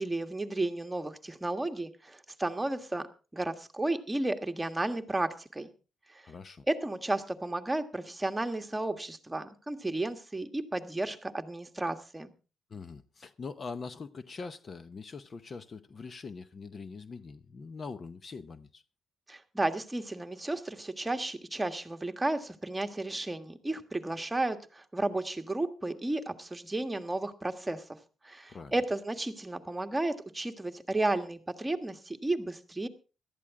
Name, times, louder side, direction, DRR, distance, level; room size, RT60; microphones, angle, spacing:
voice 1, 0.0-3.1 3.3-5.7 6.1-6.3 6.7-12.3 19.3-28.0 28.2-32.9, right 2 dB, 15° right, 1.5 m, -33 dB
voice 2, 6.2-6.6 12.7-18.8 28.5-28.7, left 4 dB, 40° left, 0.8 m, -43 dB
17.5 x 12.5 x 3.7 m
cardioid pair, 90°, 0 cm